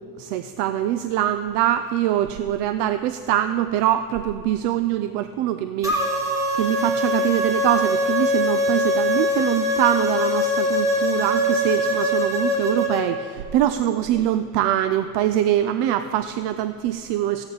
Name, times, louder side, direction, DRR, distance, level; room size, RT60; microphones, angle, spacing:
voice 1, 0.0-17.4, right 12 dB, 65° right, 11 dB, 0.5 m, -23 dB
sound 1, 5.8-13.0, left 1 dB, 5° right, 1.4 m, -22 dB
15.5 x 8.8 x 3.9 m, 2.2 s
cardioid pair, 125°, 45 cm